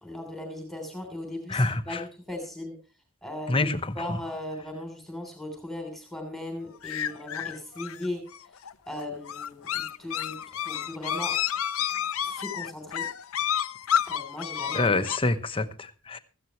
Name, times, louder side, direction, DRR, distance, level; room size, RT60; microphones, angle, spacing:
voice 1, 0.0-2.7 3.2-3.7 3.9-8.2 8.9-11.4 12.2-13.1 14.0-14.9, left 1 dB, ahead, 3.3 m, -37 dB
voice 2, 1.5-2.0 3.5-4.2 14.7-16.2, left 2 dB, 25° left, 1.0 m, -27 dB
sound 1, 6.8-15.2, left 9 dB, 80° left, 0.6 m, -30 dB
16.5 x 14.5 x 3.1 m
head